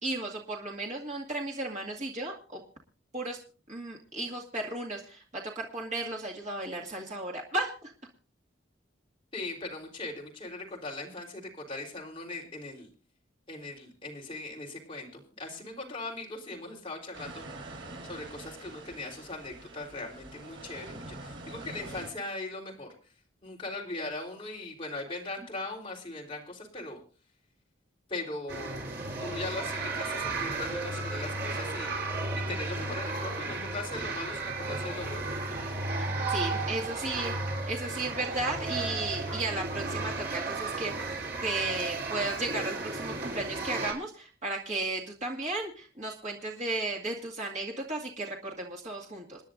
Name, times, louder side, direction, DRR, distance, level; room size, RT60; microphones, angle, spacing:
voice 1, 0.0-2.6 3.1-3.4 3.7-7.9 36.3-37.3 37.6-49.4, right 2 dB, 40° right, -2 dB, 2.1 m, -34 dB
voice 2, 9.3-12.9 13.5-17.5 18.0-22.9 23.4-27.0 28.1-28.8 29.2-31.9 32.4-35.3, left 2 dB, 30° left, -2 dB, 3.8 m, -39 dB
sound 1, 17.1-22.1, right 2 dB, 70° right, 4.9 m, -45 dB
sound 2, 28.5-43.9, right 3 dB, 55° right, 3.5 m, -34 dB
28.0 x 10.5 x 2.6 m, 0.37 s
head